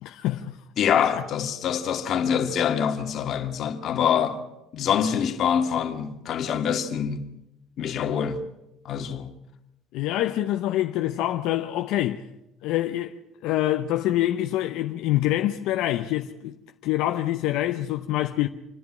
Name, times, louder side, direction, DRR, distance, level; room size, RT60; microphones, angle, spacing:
voice 1, 0.0-0.6 1.2-1.3 9.9-12.2 12.6-13.1 13.4-16.6 16.8-18.5, left 14 dB, 75° left, 0.9 m, -25 dB
voice 2, 0.8-4.4 4.7-7.2 7.8-8.4 8.9-9.3, left 8 dB, 50° left, 2.0 m, -25 dB
27.5 x 10.5 x 9.7 m
cardioid pair, 140°, 0 cm